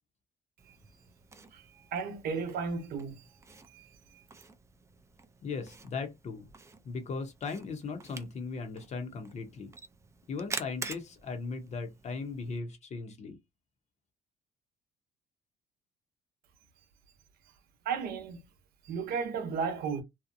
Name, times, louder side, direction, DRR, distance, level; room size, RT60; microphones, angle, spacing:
Camera, 0.6-12.6, right 4 dB, 15° right, 0.4 m, -47 dB
voice 1, 1.9-3.1 3.7-3.8 17.9-18.4 18.9-20.0, right 5 dB, 65° right, 0.7 m, -33 dB
voice 2, 5.4-6.4 6.8-9.7 10.3-13.4, left 4 dB, 40° left, 0.6 m, -38 dB
2.7 x 2.1 x 2.5 m
cardioid pair, 110°, 17 cm